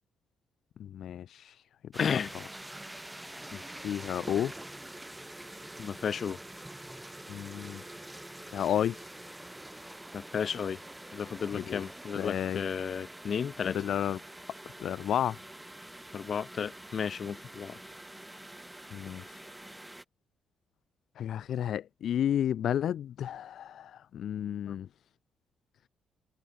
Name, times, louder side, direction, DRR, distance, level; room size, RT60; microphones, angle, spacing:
voice 1, 0.8-1.6 3.8-4.5 7.3-7.8 8.5-9.1 11.5-11.8 12.2-12.6 13.7-14.2 14.8-15.4 18.9-19.5 21.2-24.9, left 10 dB, 65° left, 0.4 m, -32 dB
sound 1, 1.9-20.0, right 1 dB, 10° right, 1.7 m, -46 dB
voice 2, 2.0-2.3 3.5-3.6 5.8-6.4 10.1-10.8 11.1-13.8 16.1-17.8 24.7-24.8, left 7 dB, 50° left, 1.2 m, -33 dB
cardioid pair, 90°, 0 cm